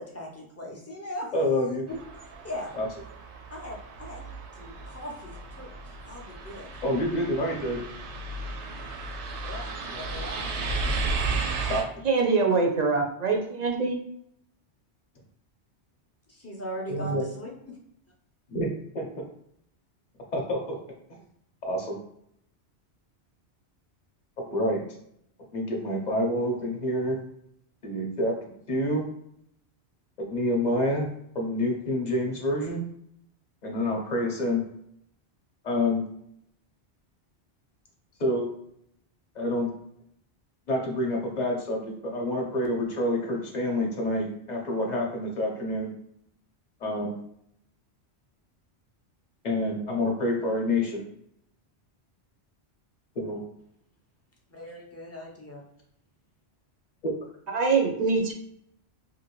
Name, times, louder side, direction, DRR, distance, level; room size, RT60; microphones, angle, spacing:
voice 1, 0.0-1.3 1.9-2.0 2.4-2.7 3.5-5.7 6.0-6.7 9.4-10.5 16.3-17.5 54.5-55.6, equal, 25° left, -1 dB, 0.3 m, -39 dB
voice 2, 1.3-1.9 2.7-2.9 6.8-7.8 11.7-11.8 16.9-17.2 18.5-18.7 18.9-19.0 20.3-20.8 21.6-22.0 24.4-24.8 25.5-27.2 27.8-28.3 28.7-29.0 30.3-31.1 31.3-32.9 33.6-34.6 35.6-36.0 38.2-38.5 39.3-39.7 40.7-45.9 46.8-47.1 49.4-51.0 53.2-53.4 57.0-57.1, left 1 dB, 45° left, 0 dB, 0.7 m, -27 dB
sound 1, 1.9-11.8, right 3 dB, 90° right, 0.9 m, -34 dB
voice 3, 12.0-14.0 57.5-58.3, right 4 dB, 55° right, 2 dB, 0.5 m, -24 dB
2.8 x 2.6 x 2.9 m, 0.73 s
omnidirectional pair, 1.2 m